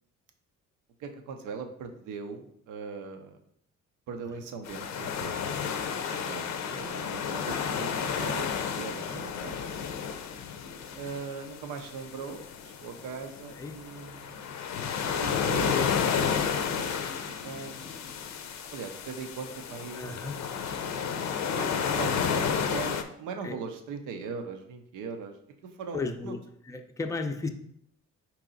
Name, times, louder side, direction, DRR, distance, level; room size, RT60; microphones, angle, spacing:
voice 1, 1.0-3.4 4.1-5.5 5.8-9.7 11.0-12.5 12.8-14.5 15.2-17.7 18.7-20.2 21.5-25.4 25.6-26.3, right 5 dB, 90° right, 5 dB, 0.6 m, -40 dB
sound 1, 4.6-23.0, left 7 dB, 65° left, 0.5 m, -32 dB
voice 2, 15.3-15.6 19.9-20.4 23.4-23.6 25.9-26.4 26.7-27.5, left 3 dB, 10° left, 5 dB, 0.4 m, -35 dB
4.6 x 2.9 x 3.8 m, 0.70 s
cardioid pair, 90°, 30 cm